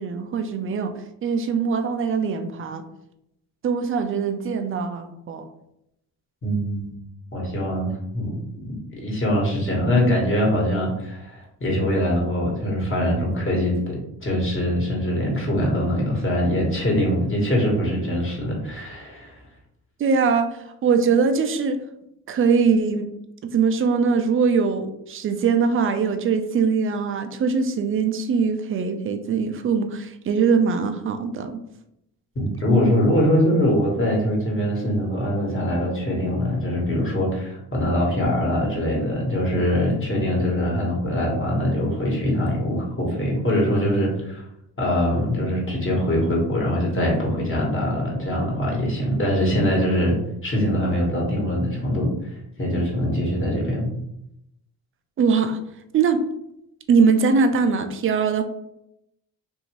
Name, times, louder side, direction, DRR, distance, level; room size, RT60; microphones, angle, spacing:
voice 1, 0.0-2.9 3.6-5.5 20.0-21.8 22.3-23.1 23.4-31.6 55.2-55.6 55.9-56.2 56.9-58.4, right 5 dB, 30° right, 7 dB, 0.4 m, -22 dB
voice 2, 6.4-7.0 7.3-19.4 32.3-44.4 44.8-50.2 50.4-53.9, equal, 30° left, -3 dB, 1.3 m, -23 dB
2.7 x 2.6 x 3.0 m, 0.81 s
supercardioid pair, 70°, 44 cm